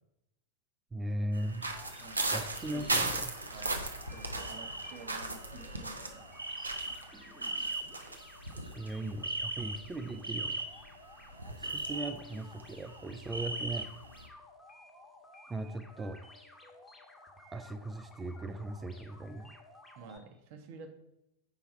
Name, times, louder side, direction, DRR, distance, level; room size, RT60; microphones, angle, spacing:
voice 1, 0.9-1.7 2.3-3.3 7.1-7.7 8.6-10.6 11.6-13.9 15.5-16.2 17.5-19.5, right 1 dB, 15° right, 9 dB, 0.4 m, -38 dB
sound 1, 1.3-11.0 11.3-14.3, right 2 dB, 80° right, 0.6 m, -37 dB
sound 2, 1.6-20.2, left 2 dB, 10° left, 1.1 m, -55 dB
voice 2, 2.6-3.2 3.5-3.8 4.1-6.2 20.0-20.9, right 4 dB, 45° right, 7 dB, 0.9 m, -49 dB
5.6 x 4.6 x 4.4 m, 0.87 s
figure-of-eight pair, 90°, 0 cm